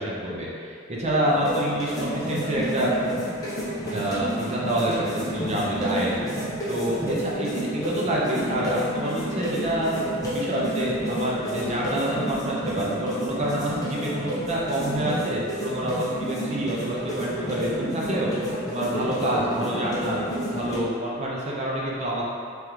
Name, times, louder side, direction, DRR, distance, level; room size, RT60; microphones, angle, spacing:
voice 1, 0.0-2.9 3.9-6.2 6.7-10.0 10.3-18.3 18.7-20.2 20.5-22.3, right 1 dB, 35° right, -5 dB, 0.5 m, -27 dB
sound 1, 1.3-20.8, equal, 15° left, 0.7 m, -30 dB
3.6 x 3.3 x 3.0 m, 2.3 s
head